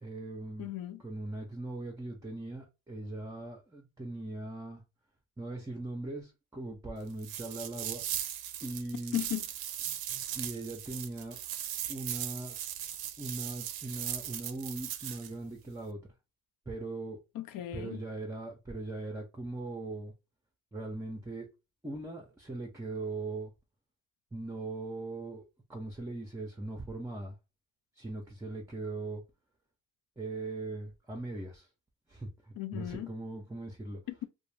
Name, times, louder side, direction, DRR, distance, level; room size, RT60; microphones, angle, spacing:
voice 1, 0.0-0.7 1.0-4.8 5.4-8.0 8.6-9.2 9.9-11.4 11.9-12.6 13.2-16.0 16.7-17.2 17.7-20.1 20.7-21.5 21.8-23.5 24.3-27.4 28.0-29.2 30.2-31.7 32.1-34.0, right 2 dB, 10° right, 0.5 m, -40 dB
voice 2, 0.6-1.0 9.1-9.4 17.3-18.0 32.6-33.1 34.1-34.2, left 13 dB, 70° left, 0.5 m, -36 dB
sound 1, 7.2-15.3, right 11 dB, 85° right, 0.5 m, -38 dB
2.4 x 2.1 x 3.1 m
cardioid pair, 95°, 36 cm